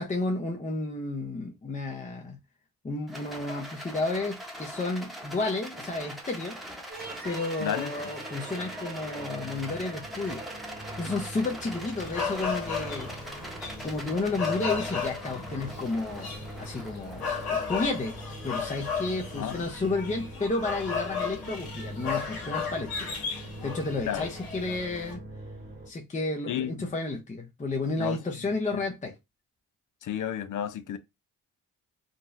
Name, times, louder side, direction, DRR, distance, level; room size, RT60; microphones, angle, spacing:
voice 1, 0.0-2.4 2.8-6.6 7.2-10.4 10.8-13.1 13.8-18.2 18.4-25.2 25.9-29.1, left 2 dB, 20° left, 0.7 m, -32 dB
Rattle, 3.1-20.4, equal, ahead, 1.1 m, -43 dB
sound 1, 6.9-25.9, right 2 dB, 25° right, 1.1 m, -43 dB
voice 2, 7.6-7.9 19.4-19.7 24.1-24.3 26.5-26.9 28.0-28.2 28.7-28.9 30.0-31.0, left 10 dB, 55° left, 0.6 m, -32 dB
sound 2, 12.0-25.1, left 6 dB, 75° left, 1.3 m, -35 dB
3.8 x 2.2 x 2.6 m
supercardioid pair, 55°, 37 cm